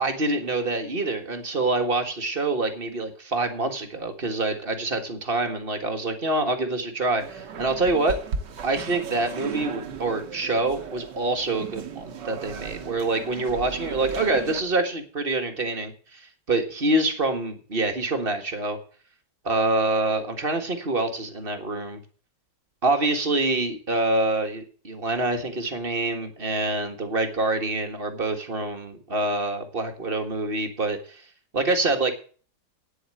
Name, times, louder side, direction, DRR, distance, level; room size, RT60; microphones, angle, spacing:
voice 1, 0.0-8.2 8.6-18.8 19.5-22.0 22.8-31.2 31.5-32.1, right 2 dB, 35° right, 5 dB, 1.9 m, -26 dB
sound 1, 7.2-14.6, right 6 dB, 80° right, 1.8 m, -36 dB
9.6 x 7.9 x 7.8 m, 0.41 s
omnidirectional pair, 1.9 m